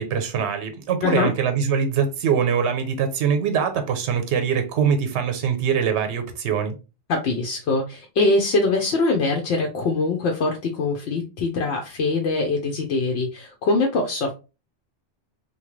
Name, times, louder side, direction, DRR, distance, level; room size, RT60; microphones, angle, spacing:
voice 1, 0.0-6.7, right 7 dB, 75° right, 0.9 m, -23 dB
voice 2, 7.1-14.3, left 3 dB, 70° left, 0.8 m, -23 dB
2.9 x 2.2 x 3.0 m
omnidirectional pair, 1.2 m